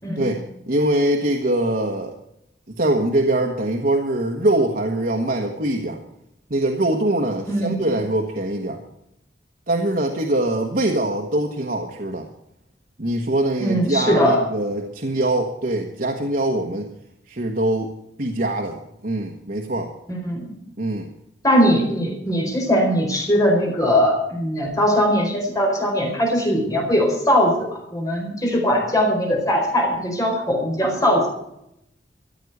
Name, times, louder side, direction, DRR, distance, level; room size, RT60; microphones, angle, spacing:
voice 1, 0.2-2.2 2.7-6.0 6.5-8.8 9.7-12.3 13.0-16.9 17.3-17.9 18.2-19.9 20.8-21.1, right 1 dB, 55° right, 2 dB, 1.3 m, -23 dB
voice 2, 7.5-7.8 13.6-14.4 20.1-20.5 21.4-31.2, equal, 20° left, 0 dB, 4.4 m, -20 dB
14.5 x 8.5 x 8.0 m, 0.81 s
head